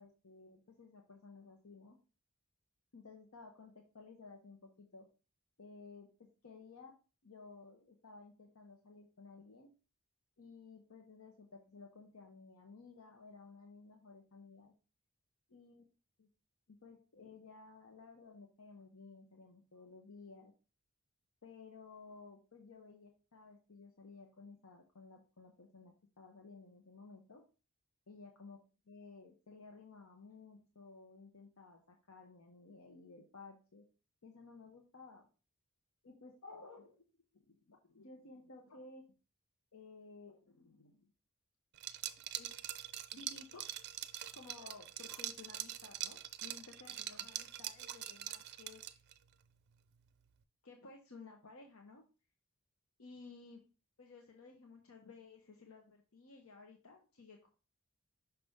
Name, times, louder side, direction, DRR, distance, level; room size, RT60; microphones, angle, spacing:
voice 1, 0.0-2.0 2.9-5.1 5.6-9.7 10.4-14.7 15.5-15.8 16.2-16.3 16.7-20.5 21.4-27.4 28.1-33.9 34.2-35.3 36.0-37.1 37.3-39.1 39.7-41.1 42.4-42.5 43.1-43.7 44.3-48.8 50.6-52.0 53.0-53.6 54.0-57.5, left 4 dB, 75° left, 2 dB, 0.9 m, -56 dB
Liquid, 41.8-49.2, right 12 dB, 50° right, 0.4 m, -44 dB
5.8 x 3.6 x 5.4 m, 0.34 s
head